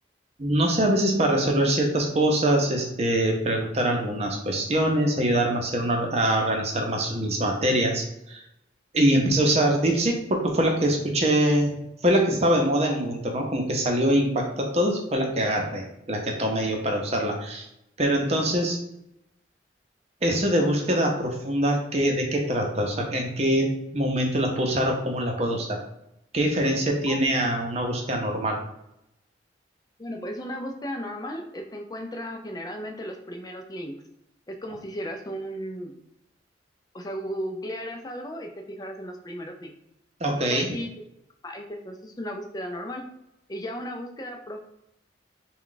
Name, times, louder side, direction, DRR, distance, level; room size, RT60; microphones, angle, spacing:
voice 1, 0.4-8.4 8.9-11.7 12.0-17.7 18.0-18.8 20.2-25.8 26.3-28.6 40.2-40.7, right 1 dB, 35° right, 1 dB, 0.7 m, -24 dB
voice 2, 30.0-33.9 34.5-35.9 36.9-39.7 40.4-40.9 41.4-43.0 43.5-44.7, equal, 20° left, 3 dB, 0.5 m, -35 dB
3.6 x 2.3 x 3.8 m, 0.82 s
head